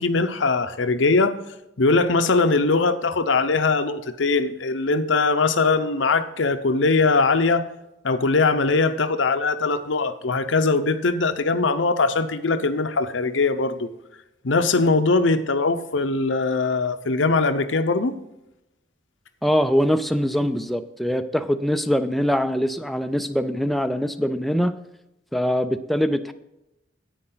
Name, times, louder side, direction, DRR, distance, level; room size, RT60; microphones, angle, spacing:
voice 1, 0.0-1.4 1.8-7.7 8.0-13.9 14.4-18.1, left 3 dB, 80° left, 10 dB, 0.7 m, -21 dB
voice 2, 19.4-24.7 25.3-26.3, equal, ahead, 8 dB, 0.4 m, -23 dB
10.0 x 8.9 x 3.9 m, 0.88 s
head